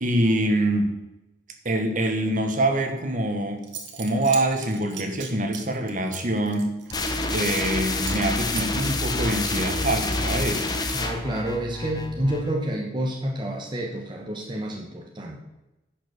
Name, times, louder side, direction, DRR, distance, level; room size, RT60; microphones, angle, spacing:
voice 1, 0.0-1.0 1.6-3.6 3.9-6.8 7.3-10.7, right 1 dB, 45° right, 5 dB, 1.5 m, -25 dB
Zipper (clothing) / Coin (dropping), 3.3-3.4 3.6-7.8 8.0-8.3 8.5-10.3, right 7 dB, 80° right, 1.7 m, -39 dB
sound 1, 6.9-12.5, left 2 dB, 20° left, 1.1 m, -28 dB
voice 2, 10.9-15.4, right 1 dB, 25° right, 0 dB, 1.1 m, -29 dB
11.0 x 6.0 x 6.8 m, 0.97 s
head